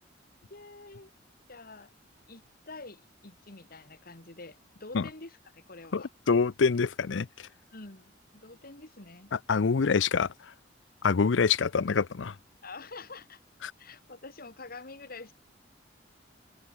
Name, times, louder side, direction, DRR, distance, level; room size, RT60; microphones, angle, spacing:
voice 1, 0.5-1.1 1.5-1.9 2.3-6.1 7.7-9.3 12.6-13.4 13.8-15.3, left 3 dB, 55° left, 2.7 m, -47 dB
voice 2, 5.9-7.3 9.3-10.3 11.0-12.3 13.6-13.7, left 5 dB, 80° left, 0.6 m, -25 dB
head